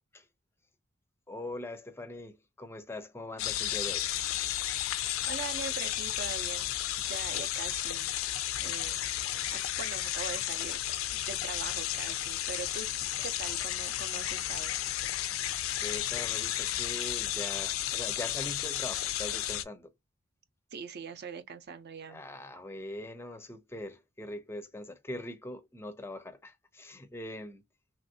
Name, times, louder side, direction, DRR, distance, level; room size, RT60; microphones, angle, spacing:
voice 1, 1.3-4.1 15.8-19.9 22.1-27.6, left 1 dB, 10° left, 0.4 m, -42 dB
sound 1, 3.4-19.6, left 13 dB, 80° left, 0.4 m, -33 dB
voice 2, 5.3-6.7 7.0-8.1 8.6-9.0 9.5-10.8 11.1-12.9 13.2-14.8 20.7-22.2, right 6 dB, 55° right, 0.5 m, -42 dB
3.1 x 2.5 x 2.6 m
head